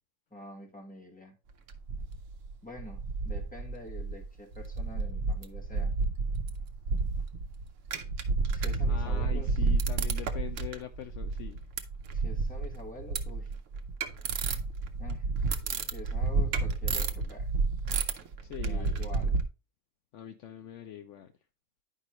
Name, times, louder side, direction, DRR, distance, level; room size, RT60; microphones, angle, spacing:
voice 1, 0.3-1.4 2.6-5.9 8.5-9.6 12.1-13.5 15.0-15.3 15.9-17.5 18.6-19.4, left 1 dB, 5° left, 1 dB, 1.2 m, -46 dB
sound 1, 1.7-2.5 2.8-4.3 4.5-19.5, right 4 dB, 65° right, 1.1 m, -31 dB
voice 2, 8.9-11.6 15.6-15.7 18.4-19.1 20.1-21.3, left 10 dB, 65° left, 8 dB, 0.8 m, -43 dB
9.7 x 5.2 x 3.0 m, 0.30 s
omnidirectional pair, 1.5 m